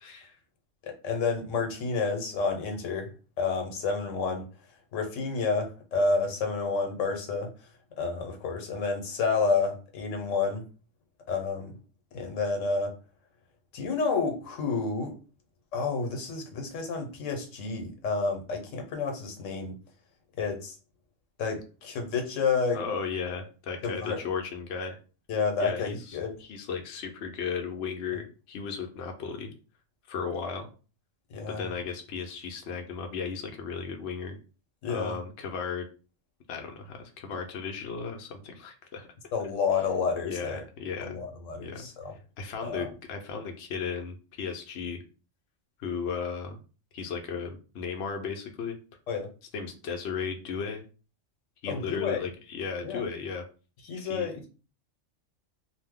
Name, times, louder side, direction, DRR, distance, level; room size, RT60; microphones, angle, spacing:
voice 1, 0.0-0.4 22.7-25.0 25.6-29.5 30.1-30.7 31.5-34.4 34.9-35.9 36.5-39.1 40.3-41.2 41.6-41.9 42.4-45.0 45.8-46.6 46.9-48.8 49.5-50.8 51.6-53.4 53.9-54.3, left 6 dB, 70° left, 4 dB, 0.8 m, -35 dB
voice 2, 0.8-3.1 3.4-4.5 4.9-7.7 8.0-10.6 11.3-11.7 12.1-12.9 13.7-15.2 15.7-19.8 20.4-20.8 21.4-22.8 23.8-24.2 25.3-26.3 31.3-31.7 34.8-35.1 39.3-40.6 41.0-42.1 42.6-42.9 49.1-49.3 51.7-52.2 52.8-53.0 53.8-54.5, left 4 dB, 85° left, 4 dB, 1.1 m, -30 dB
2.6 x 2.1 x 3.4 m, 0.35 s
omnidirectional pair, 1.3 m